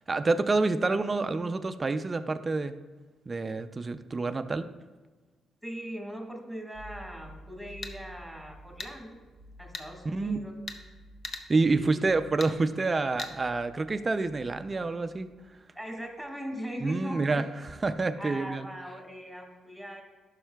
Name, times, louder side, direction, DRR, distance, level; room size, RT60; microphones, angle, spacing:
voice 1, 0.1-2.8 3.3-4.7 10.1-10.4 11.5-15.3 16.8-18.7, right 3 dB, 30° right, 9 dB, 0.4 m, -28 dB
voice 2, 5.6-9.2 9.6-10.5 11.7-12.1 15.7-17.5 18.2-20.0, equal, 5° left, 0 dB, 1.6 m, -40 dB
sound 1, 6.7-15.8 16.0-16.2, equal, 85° right, 0.7 m, -52 dB
sound 2, 7.7-7.9 8.8-8.9 9.7-9.9 10.7-10.8 11.2-11.5 12.4-12.5 13.2-13.3, left 3 dB, 50° left, 0.7 m, -38 dB
11.5 x 5.6 x 2.3 m, 1.3 s
cardioid pair, 80°, 0 cm